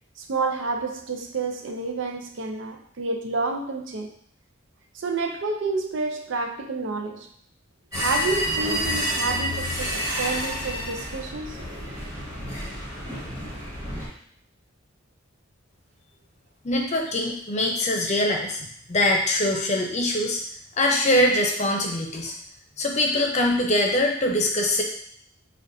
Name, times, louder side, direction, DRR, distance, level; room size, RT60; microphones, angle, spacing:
voice 1, 0.2-4.1 4.9-7.3 7.9-11.6, right 3 dB, 65° right, 4 dB, 0.5 m, -29 dB
sound 1, 7.9-14.1, equal, 20° right, 1.4 m, -29 dB
voice 2, 16.6-20.4 20.8-22.3 22.8-24.8, left 1 dB, 35° left, 1 dB, 0.7 m, -23 dB
6.3 x 2.4 x 2.6 m, 0.62 s
head